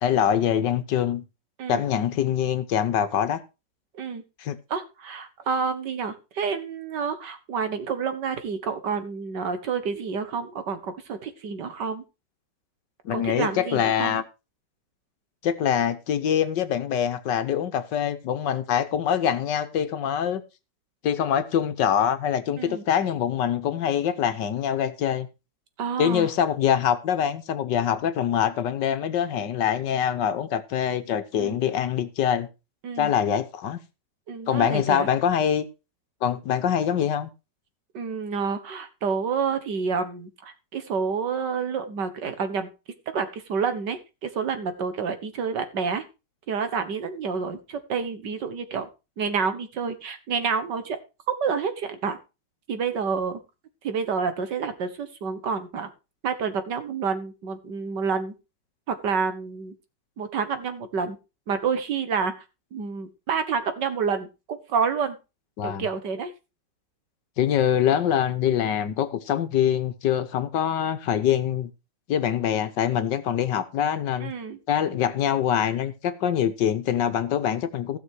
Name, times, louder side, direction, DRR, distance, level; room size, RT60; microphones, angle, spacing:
voice 1, 0.0-1.2 1.7-3.4 4.4-4.6 13.0-14.2 15.4-20.4 21.0-25.3 26.0-32.5 33.0-33.8 34.5-35.7 36.2-37.3 65.6-65.9 67.4-71.7 72.1-74.3 74.7-78.0, left 9 dB, 75° left, 1.6 m, -24 dB
voice 2, 4.7-12.0 13.1-14.2 22.6-22.8 25.8-26.3 31.4-31.6 32.8-33.1 34.3-35.1 37.9-42.7 43.1-46.0 46.5-48.9 49.2-51.0 51.3-52.2 52.7-53.4 53.8-55.9 56.2-58.3 58.9-59.7 60.2-61.2 61.5-62.3 62.7-65.2 65.6-66.3 74.2-74.6, right 5 dB, 70° right, 2.0 m, -28 dB
15.5 x 6.3 x 4.7 m
omnidirectional pair, 1.9 m